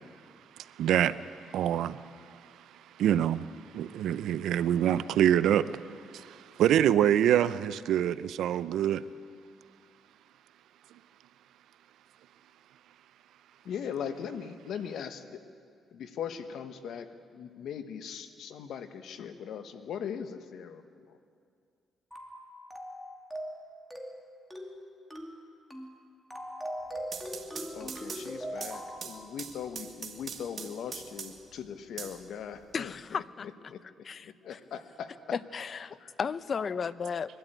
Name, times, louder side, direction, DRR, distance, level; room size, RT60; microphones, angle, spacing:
voice 1, 0.8-1.2 1.5-2.0 3.0-5.8 6.1-9.0, right 10 dB, 80° right, 15 dB, 0.6 m, -25 dB
voice 2, 13.6-15.4 15.9-21.2 27.7-32.9 33.7-33.8 34.2-35.1 36.0-36.1, left 7 dB, 70° left, 9 dB, 1.3 m, -40 dB
sound 1, 22.1-22.4 22.7-23.0 23.3-23.6 23.9-24.2 24.5-24.8 25.1-25.4 25.7-25.9 26.3-29.0, equal, 5° left, 2.5 m, -39 dB
sound 2, 26.9-31.5 32.0-32.9, right 6 dB, 50° right, 2.0 m, -42 dB
voice 3, 32.7-34.6 35.3-37.4, left 6 dB, 45° left, 17 dB, 0.6 m, -35 dB
22.5 x 12.5 x 9.1 m, 2.3 s
cardioid pair, 90°, 0 cm